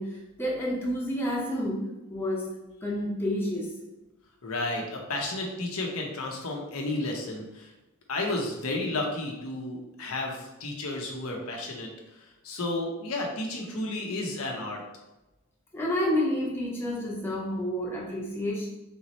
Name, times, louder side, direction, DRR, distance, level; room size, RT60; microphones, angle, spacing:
voice 1, 0.0-2.5 2.8-3.7 15.7-18.7, left 1 dB, 10° left, -5 dB, 0.9 m, -29 dB
voice 2, 4.4-7.7 8.1-11.9 12.2-14.8, left 2 dB, 80° left, 0 dB, 0.8 m, -32 dB
3.6 x 3.1 x 4.1 m, 0.99 s
head